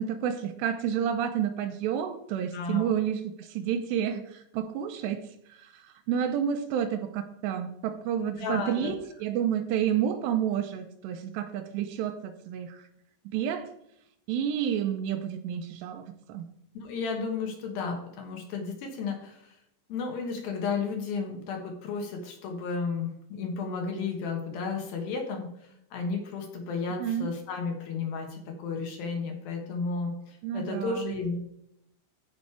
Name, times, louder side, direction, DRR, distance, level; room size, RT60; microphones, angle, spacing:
voice 1, 0.0-12.9 13.3-13.7 14.3-16.5 27.0-27.3 30.4-31.1, right 9 dB, 80° right, 7 dB, 2.7 m, -30 dB
voice 2, 2.5-2.9 8.2-8.9 16.8-19.6 19.9-31.4, left 4 dB, 65° left, 2 dB, 2.9 m, -33 dB
14.0 x 5.3 x 4.7 m, 0.77 s
omnidirectional pair, 5.3 m